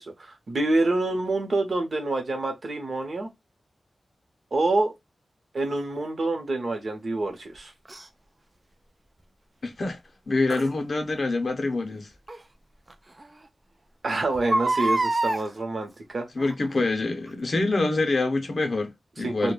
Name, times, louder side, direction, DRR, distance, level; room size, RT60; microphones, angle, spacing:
voice 1, 0.0-3.3 4.5-4.9 5.5-7.7 14.0-16.3 19.2-19.5, right 2 dB, 50° right, 0.7 m, -27 dB
Crying sobbing, 7.9-8.0 10.5-10.7 12.3-12.4 12.9-13.0 13.2-13.3 14.3-15.4 16.4-16.7 17.3-17.4, right 2 dB, 25° right, 0.3 m, -25 dB
voice 2, 9.6-10.0 10.3-12.1 16.4-19.5, left 2 dB, 45° left, 0.6 m, -26 dB
2.2 x 2.1 x 3.1 m
wide cardioid pair, 140°, 0 cm